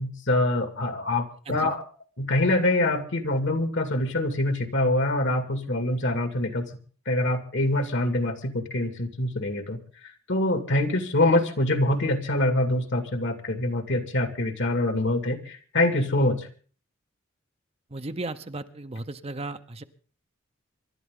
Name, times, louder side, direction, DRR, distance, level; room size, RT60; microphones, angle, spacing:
voice 1, 0.0-1.8 2.2-6.7 7.1-9.8 10.3-16.5, left 1 dB, 60° left, 8 dB, 2.2 m, -25 dB
voice 2, 17.9-19.8, right 2 dB, 30° right, 9 dB, 0.8 m, -35 dB
26.0 x 12.0 x 3.8 m, 0.42 s
head